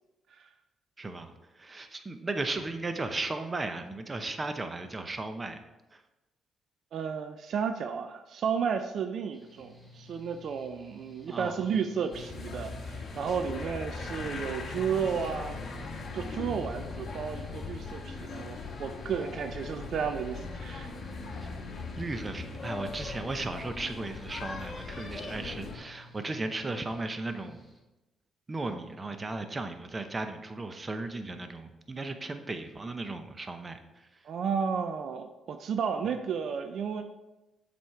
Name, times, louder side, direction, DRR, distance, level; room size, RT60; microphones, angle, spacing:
voice 1, 1.0-5.6 5.9-6.0 11.3-11.5 21.4-21.6 22.0-27.6 28.5-33.8, right 2 dB, 25° right, 7 dB, 0.7 m, -36 dB
voice 2, 6.9-15.6 16.1-20.9 34.2-37.0, right 6 dB, 65° right, 7 dB, 0.5 m, -33 dB
Mechanical fan, 9.3-27.8, left 2 dB, 5° right, 1.4 m, -53 dB
sound 1, 12.1-25.8, left 4 dB, 45° left, 1.3 m, -39 dB
7.5 x 4.3 x 4.8 m, 1.0 s
cardioid pair, 90°, 0 cm